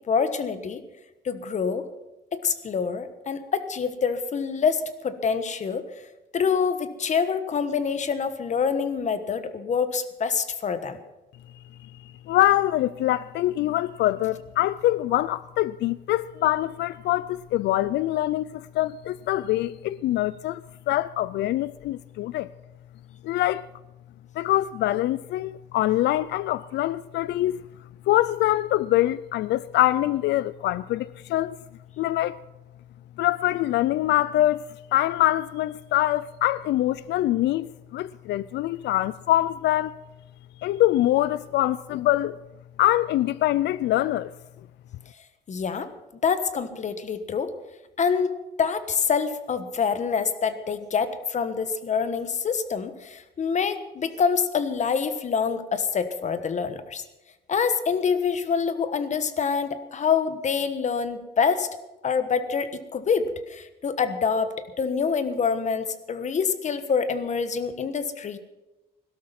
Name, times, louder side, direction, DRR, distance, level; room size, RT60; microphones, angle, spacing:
voice 1, 0.1-0.8 1.2-1.9 2.3-5.8 6.3-11.0 45.5-45.9 46.2-47.5 48.0-48.3 48.6-57.0 57.5-61.7 62.0-68.4, left 6 dB, 45° left, 1.3 m, -26 dB
voice 2, 11.9-20.6 20.9-22.5 23.2-23.6 24.4-27.6 28.1-31.5 32.0-32.4 33.2-34.6 34.9-39.9 40.6-42.4 42.8-44.3, left 14 dB, 85° left, 0.4 m, -24 dB
17.0 x 12.5 x 5.9 m
cardioid pair, 125°, 18 cm